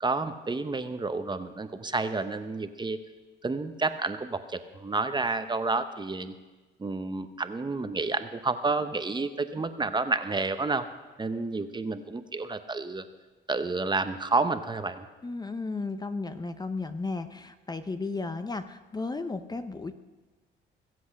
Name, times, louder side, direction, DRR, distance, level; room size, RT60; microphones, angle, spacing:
voice 1, 0.0-3.0 3.4-6.3 6.8-10.9 11.2-13.1 13.5-15.1, right 3 dB, 20° right, 10 dB, 0.9 m, -30 dB
voice 2, 15.2-20.0, left 3 dB, 20° left, 10 dB, 0.7 m, -34 dB
21.0 x 8.0 x 6.4 m, 1.3 s
cardioid pair, 90°, 20 cm